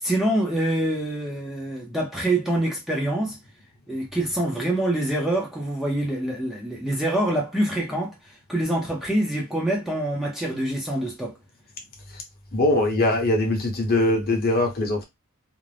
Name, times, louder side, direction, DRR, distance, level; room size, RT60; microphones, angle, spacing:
voice 1, 0.0-3.4 3.9-11.3, right 1 dB, ahead, 0.6 m, -25 dB
voice 2, 12.5-15.0, left 2 dB, 45° left, 0.8 m, -22 dB
2.5 x 2.1 x 3.2 m
head